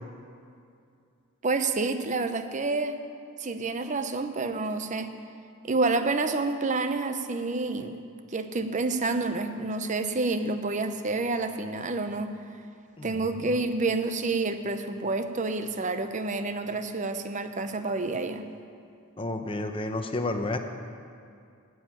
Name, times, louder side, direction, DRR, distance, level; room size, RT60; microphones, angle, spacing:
voice 1, 1.4-3.0 3.4-5.1 5.6-8.0 8.3-12.3 13.0-18.5, right 3 dB, 35° right, 9 dB, 0.7 m, -28 dB
voice 2, 19.2-20.6, left 2 dB, 25° left, 6 dB, 0.8 m, -31 dB
10.0 x 7.9 x 8.7 m, 2.4 s
head